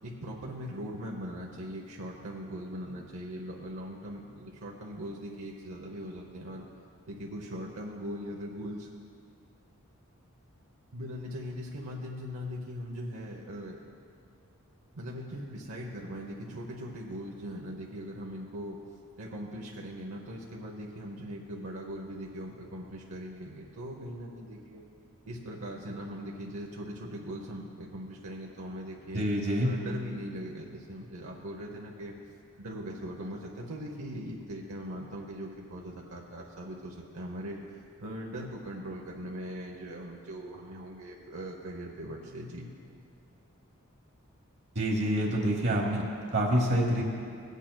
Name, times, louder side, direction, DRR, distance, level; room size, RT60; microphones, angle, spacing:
voice 1, 0.0-6.6 7.1-8.9 10.9-13.8 14.9-18.8 19.2-24.8 25.3-29.2 29.6-32.1 32.6-42.7, equal, 80° right, -2 dB, 0.8 m, -40 dB
voice 2, 29.1-29.7 44.7-46.0 46.3-47.0, right 1 dB, 50° right, -2 dB, 1.0 m, -26 dB
17.0 x 8.2 x 2.3 m, 2.4 s
head